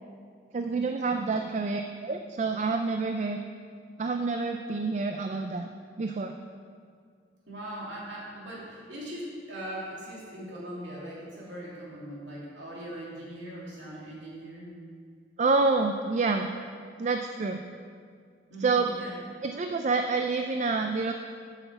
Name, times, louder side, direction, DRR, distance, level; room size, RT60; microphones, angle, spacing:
voice 1, 0.5-3.4 4.0-5.7 6.0-6.4 15.4-16.5 17.0-17.6 18.6-18.9 19.4-21.1, right 4 dB, 35° right, 5 dB, 0.3 m, -27 dB
voice 2, 1.1-1.4 7.5-14.7 18.5-19.2, right 1 dB, 70° right, -6 dB, 2.7 m, -40 dB
8.3 x 5.7 x 6.8 m, 2.1 s
head